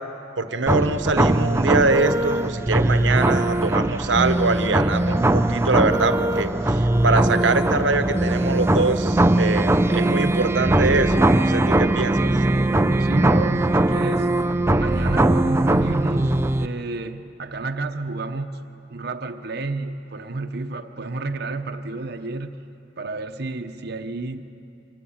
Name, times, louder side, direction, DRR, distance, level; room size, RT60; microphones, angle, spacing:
voice 1, 0.4-12.3, right 3 dB, 85° right, 10 dB, 1.1 m, -23 dB
sound 1, 0.7-16.7, right 1 dB, 15° right, 0.5 m, -20 dB
voice 2, 13.0-14.3 14.8-18.6 18.9-22.6 23.0-24.4, right 2 dB, 60° right, 7 dB, 0.9 m, -30 dB
24.5 x 19.5 x 8.7 m, 2.7 s
head